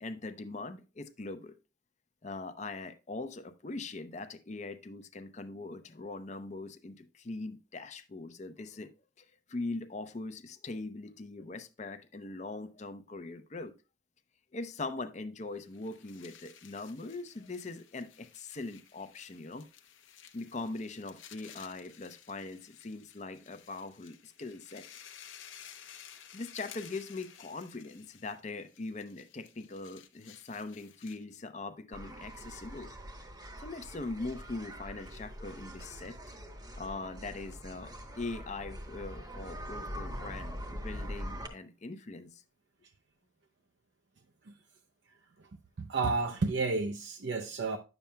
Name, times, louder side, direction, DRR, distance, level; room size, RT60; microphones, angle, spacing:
voice 1, 0.0-1.5 2.2-8.9 9.2-13.7 14.5-19.7 20.3-24.8 26.3-32.9 33.6-36.2 36.8-42.4, left 3 dB, 35° left, 0.5 m, -41 dB
sound 1, 15.6-31.4, left 9 dB, 75° left, 0.8 m, -55 dB
sound 2, 31.9-41.5, equal, 20° right, 0.9 m, -43 dB
voice 2, 45.8-47.8, right 3 dB, 65° right, 0.5 m, -31 dB
10.0 x 7.0 x 2.2 m
head